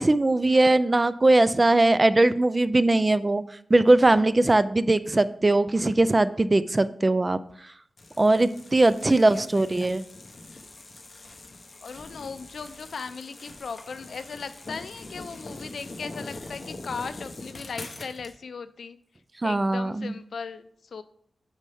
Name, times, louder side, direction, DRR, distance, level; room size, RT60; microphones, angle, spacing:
voice 1, 0.0-3.4 3.7-7.4 8.2-10.0 19.4-20.1, right 2 dB, 25° right, 14 dB, 0.3 m, -20 dB
sound 1, 8.0-18.4, left 2 dB, 45° left, 0.9 m, -43 dB
voice 2, 9.1-9.9 11.8-19.0 19.4-21.0, left 5 dB, 75° left, 12 dB, 0.5 m, -38 dB
9.2 x 5.6 x 3.5 m, 0.66 s
wide cardioid pair, 145°, 0 cm